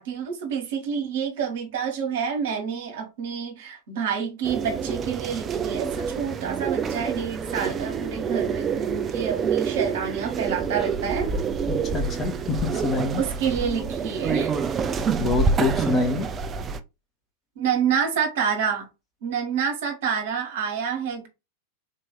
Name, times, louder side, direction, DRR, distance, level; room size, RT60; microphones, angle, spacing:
voice 1, 0.0-11.3 12.7-12.9 13.2-14.5 17.6-18.9 19.2-21.3, right 7 dB, 55° right, 1.5 m, -28 dB
sound 1, 4.4-16.8, right 6 dB, 25° right, 0.5 m, -27 dB
voice 2, 11.7-12.3 12.7-13.2 15.2-16.3, left 3 dB, 25° left, 1.4 m, -26 dB
4.2 x 3.0 x 3.4 m
figure-of-eight pair, 90°, 0 cm